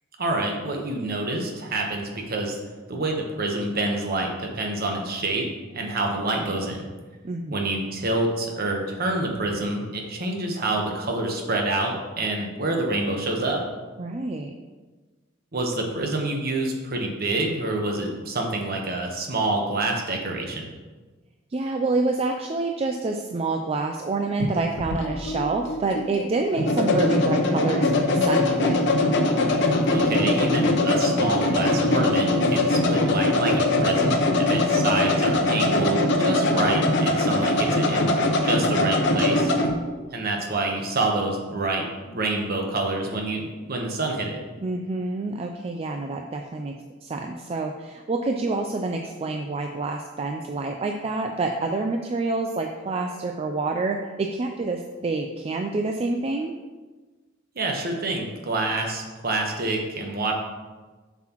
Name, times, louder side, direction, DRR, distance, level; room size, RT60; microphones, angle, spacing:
voice 1, 0.2-2.5 2.9-6.9 7.5-13.6 15.5-20.6 29.9-38.2 38.4-39.5 40.1-44.4 57.5-60.3, right 2 dB, 50° right, 1 dB, 1.1 m, -27 dB
voice 2, 7.2-7.7 14.0-14.5 21.5-28.8 44.6-46.7 47.0-56.5, right 3 dB, 30° right, 3 dB, 0.4 m, -27 dB
sound 1, 24.4-39.7, left 2 dB, 65° left, 0.8 m, -22 dB
7.3 x 6.0 x 3.0 m, 1.3 s
head